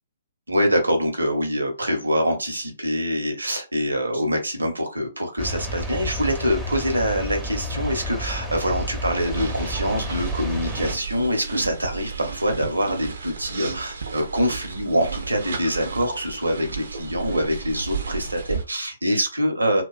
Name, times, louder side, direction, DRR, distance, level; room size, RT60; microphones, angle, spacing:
voice 1, 0.5-19.8, equal, 85° right, 4 dB, 0.9 m, -25 dB
sound 1, 5.4-11.0, equal, 5° right, 0.6 m, -31 dB
sound 2, 9.2-18.7, right 5 dB, 65° right, 0.5 m, -33 dB
2.5 x 2.2 x 2.4 m, 0.28 s
figure-of-eight pair, 125°, 0 cm